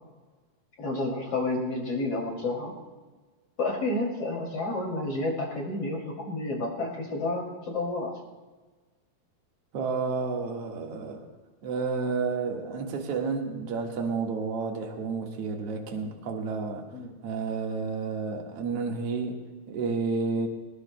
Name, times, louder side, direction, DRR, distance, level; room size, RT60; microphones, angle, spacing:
voice 1, 0.8-2.7 3.6-8.1 16.9-17.2, left 2 dB, 45° left, -2 dB, 3.4 m, -30 dB
voice 2, 9.7-11.3 11.6-16.9 17.2-20.5, right 4 dB, 50° right, 1 dB, 2.2 m, -31 dB
21.5 x 19.0 x 2.2 m, 1.3 s
omnidirectional pair, 4.1 m